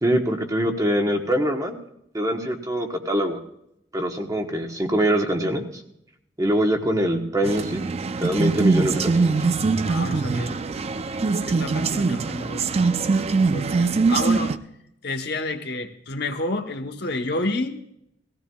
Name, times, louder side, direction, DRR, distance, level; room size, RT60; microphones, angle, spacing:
voice 1, 0.0-1.8 2.1-3.4 3.9-5.6 6.4-7.8 8.2-9.3, equal, 20° right, 4 dB, 1.1 m, -23 dB
sound 1, 7.4-14.6, right 4 dB, 35° right, 0.4 m, -22 dB
voice 2, 9.8-10.6 11.5-12.9 13.3-14.6 15.0-17.8, left 2 dB, 60° left, 5 dB, 1.0 m, -30 dB
18.0 x 15.5 x 2.3 m, 0.76 s
head